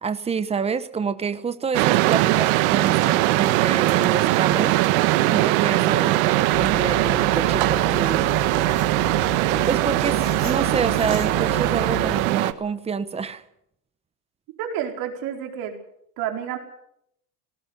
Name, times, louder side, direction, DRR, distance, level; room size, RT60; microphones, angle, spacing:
voice 1, 0.0-4.8 5.3-8.3 9.7-13.4, right 5 dB, 15° right, 12 dB, 1.0 m, -28 dB
sound 1, 1.7-12.5, right 17 dB, 65° right, 1.4 m, -20 dB
sound 2, 6.5-12.3, left 11 dB, 30° left, 5.1 m, -35 dB
voice 2, 14.6-15.8 16.2-16.6, right 9 dB, 50° right, 3 dB, 4.8 m, -29 dB
18.5 x 18.5 x 8.1 m, 0.75 s
cardioid pair, 150°, 45 cm